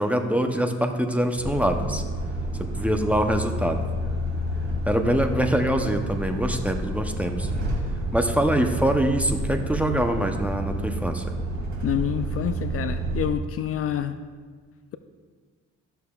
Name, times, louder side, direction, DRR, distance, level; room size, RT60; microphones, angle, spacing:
voice 1, 0.0-2.0 2.6-3.8 4.9-7.5 8.1-11.2, right 1 dB, 5° right, 5 dB, 0.7 m, -24 dB
Truck, 1.4-13.3, right 1 dB, 70° right, 2.0 m, -29 dB
voice 2, 11.8-14.2, left 9 dB, 50° left, 10 dB, 0.4 m, -27 dB
13.5 x 6.8 x 2.3 m, 1.5 s
cardioid pair, 90°, 30 cm